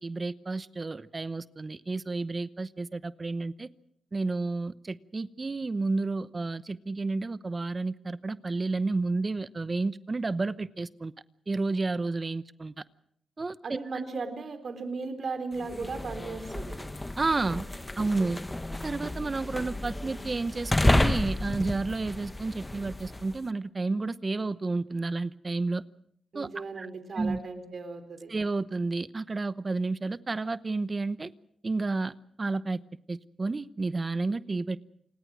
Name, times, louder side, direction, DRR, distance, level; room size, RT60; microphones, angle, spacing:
voice 1, 0.0-3.7 4.1-11.1 11.5-12.7 13.4-13.8 17.2-17.7 18.0-18.4 18.8-25.8 26.3-26.5 26.8-26.9 27.1-27.4 28.3-31.3 31.6-32.8 33.1-34.9, right 3 dB, 35° right, 0.9 m, -31 dB
voice 2, 13.6-16.8 26.3-28.3, right 4 dB, 60° right, 3.8 m, -36 dB
sound 1, 15.6-23.4, left 1 dB, 15° left, 1.3 m, -31 dB
28.5 x 20.0 x 6.3 m
cardioid pair, 70°, 0 cm